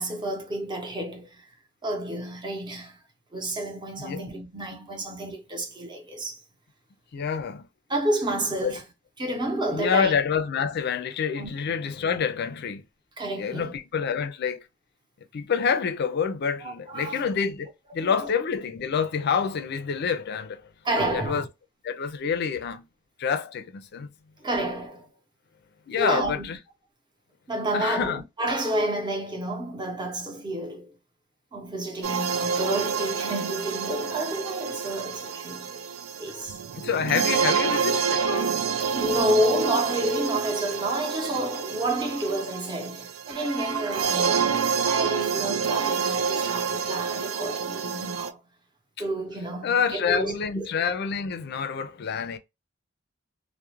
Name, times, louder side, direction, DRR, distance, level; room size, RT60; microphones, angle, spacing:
voice 1, 0.0-1.4 1.8-3.0 3.3-6.4 7.9-8.8 9.2-10.2 11.4-11.6 13.2-13.8 16.6-17.3 18.0-18.3 20.8-21.5 24.4-25.1 26.0-26.5 27.5-30.9 31.5-35.8 36.2-36.6 38.9-48.4 49.0-50.7, right 1 dB, 20° right, 0.7 m, -30 dB
voice 2, 7.1-7.7 8.6-8.8 9.7-12.8 13.4-14.6 15.3-20.6 21.1-21.5 21.8-22.8 23.2-24.1 25.9-26.6 27.7-28.2 36.7-39.0 49.6-52.4, left 6 dB, 55° left, 0.4 m, -27 dB
sound 1, 32.0-48.3, right 6 dB, 70° right, 0.3 m, -28 dB
2.3 x 2.1 x 2.8 m
head